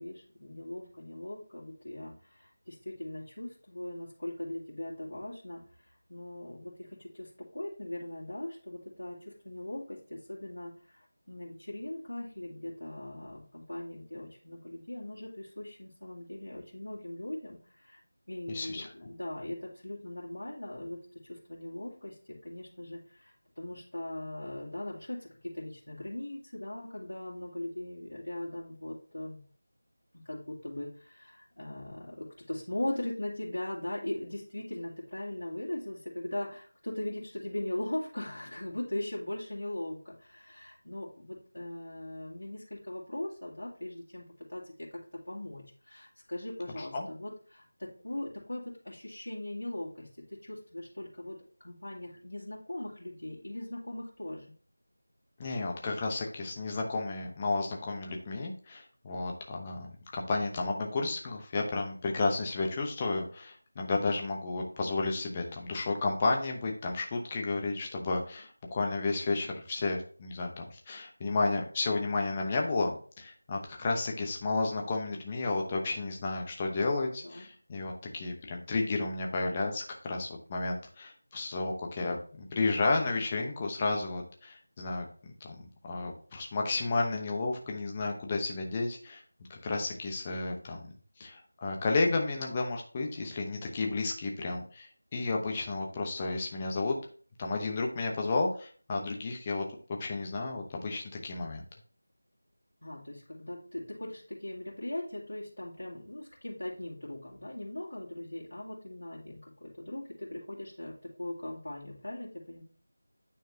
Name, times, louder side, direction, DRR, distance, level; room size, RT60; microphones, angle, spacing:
voice 1, 0.0-5.6 6.1-11.0 11.3-18.0 18.3-22.2 22.4-29.4 30.2-44.9 45.3-54.5 77.2-77.5 102.8-112.6, left 1 dB, 80° left, -6 dB, 2.3 m, -40 dB
voice 2, 18.5-18.9 46.8-47.1 55.4-89.2 89.5-90.9 91.2-97.0 97.4-99.6 100.0-101.6, left 3 dB, 20° left, 1 dB, 0.9 m, -32 dB
9.2 x 4.5 x 2.9 m, 0.43 s
figure-of-eight pair, 170°, 0 cm